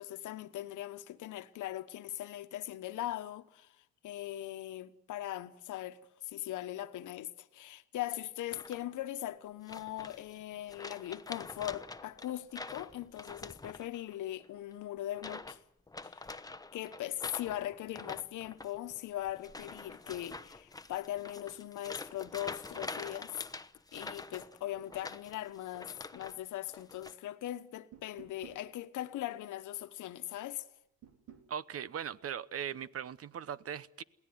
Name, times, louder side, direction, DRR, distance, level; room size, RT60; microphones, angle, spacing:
voice 1, 0.0-3.8 4.0-15.6 16.0-16.2 16.7-23.4 23.9-30.6, left 13 dB, 80° left, 1.2 m, -40 dB
sound 1, 8.5-9.1 9.7-10.4 10.7-14.1 14.4-14.7 15.1-15.6 15.9-26.4 26.7-27.1, left 3 dB, 10° left, 0.9 m, -46 dB
sound 2, 27.9-28.7 31.0-31.5, right 8 dB, 90° right, 3.2 m, -53 dB
voice 2, 31.5-34.0, right 8 dB, 50° right, 0.9 m, -39 dB
22.0 x 17.5 x 9.5 m
cardioid pair, 90°, 30 cm